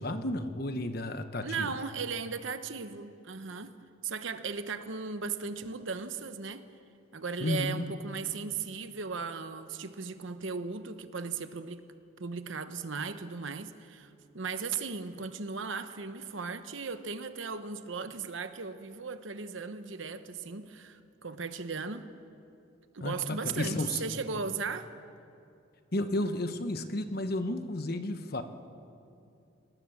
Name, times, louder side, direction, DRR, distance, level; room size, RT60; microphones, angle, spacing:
voice 1, 0.0-1.7 7.4-7.9 23.0-24.0 25.9-28.4, left 1 dB, 50° left, 8 dB, 1.2 m, -32 dB
voice 2, 1.4-3.8 4.0-6.7 7.1-11.8 12.2-22.1 22.9-24.9, right 5 dB, 75° right, 10 dB, 1.0 m, -37 dB
25.5 x 19.5 x 7.3 m, 2.6 s
head